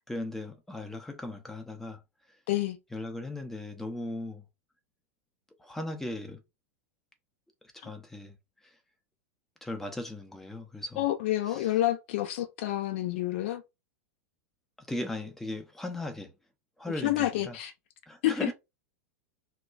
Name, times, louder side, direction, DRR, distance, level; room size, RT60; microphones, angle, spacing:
voice 1, 0.1-2.0 2.3-2.4 2.9-4.5 5.6-6.4 7.7-8.4 8.6-8.8 9.6-11.1 11.5-11.7 14.8-16.3 16.8-17.6 18.1-18.5, left 1 dB, 5° left, 0.6 m, -37 dB
voice 2, 2.5-2.8 7.8-7.9 11.0-13.6 17.0-17.7 18.2-18.5, left 14 dB, 50° left, 0.4 m, -28 dB
2.9 x 2.1 x 2.4 m
figure-of-eight pair, 90°, 8 cm